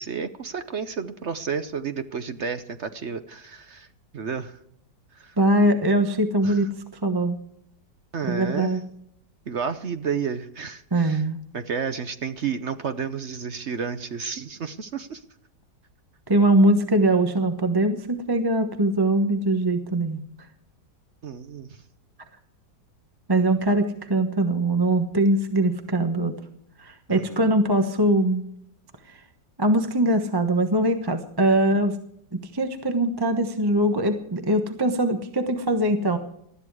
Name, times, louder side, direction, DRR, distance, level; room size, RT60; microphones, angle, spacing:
voice 1, 0.0-3.9 4.1-4.6 5.1-5.3 6.4-6.7 8.1-8.8 9.5-11.2 11.5-15.2 21.2-21.8 27.1-27.4, right 6 dB, 50° right, 10 dB, 0.8 m, -31 dB
voice 2, 5.4-6.7 7.0-7.4 8.2-8.8 10.9-11.4 16.3-20.2 23.3-26.3 26.8-28.4 29.1-29.2 29.6-32.0 32.3-36.2, right 1 dB, 15° right, 7 dB, 0.9 m, -22 dB
19.5 x 13.0 x 4.8 m, 0.71 s
omnidirectional pair, 2.0 m